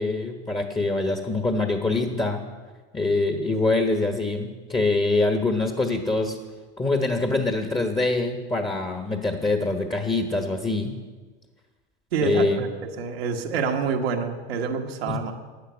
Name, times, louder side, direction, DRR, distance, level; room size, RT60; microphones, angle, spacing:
voice 1, 0.0-2.4 2.9-6.4 6.8-11.0 12.2-12.6 15.1-15.2, left 2 dB, 15° left, 4 dB, 1.3 m, -24 dB
voice 2, 12.1-12.7 13.0-15.3, right 5 dB, 85° right, 2 dB, 1.4 m, -27 dB
12.0 x 9.1 x 6.3 m, 1.3 s
hypercardioid pair, 90°, 30 cm